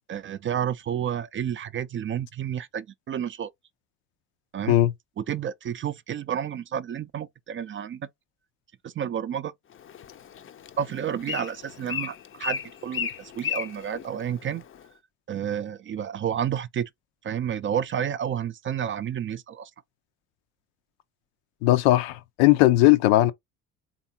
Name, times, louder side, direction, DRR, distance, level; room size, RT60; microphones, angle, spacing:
voice 1, 0.1-3.5 4.5-4.8 5.2-8.1 8.8-9.5 10.8-14.6 15.3-16.9 17.2-19.7, right 9 dB, 35° right, 0.4 m, -30 dB
Bird, 9.7-14.9, left 8 dB, 35° left, 0.5 m, -36 dB
voice 2, 21.6-23.3, left 16 dB, 80° left, 0.5 m, -18 dB
3.4 x 2.6 x 2.7 m
hypercardioid pair, 65°, 38 cm